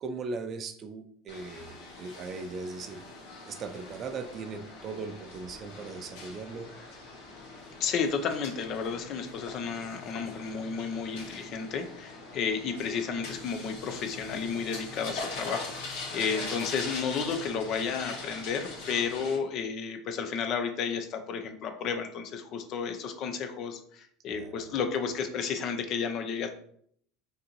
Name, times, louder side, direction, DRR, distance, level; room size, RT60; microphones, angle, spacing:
voice 1, 0.0-3.1 3.4-6.7 24.3-24.8, right 4 dB, 40° right, 8 dB, 0.5 m, -39 dB
sound 1, 1.3-19.4, left 3 dB, 80° left, 1.7 m, -42 dB
voice 2, 7.8-26.5, left 6 dB, 50° left, 7 dB, 0.5 m, -32 dB
5.1 x 2.7 x 2.9 m, 0.64 s
supercardioid pair, 105°, 0 cm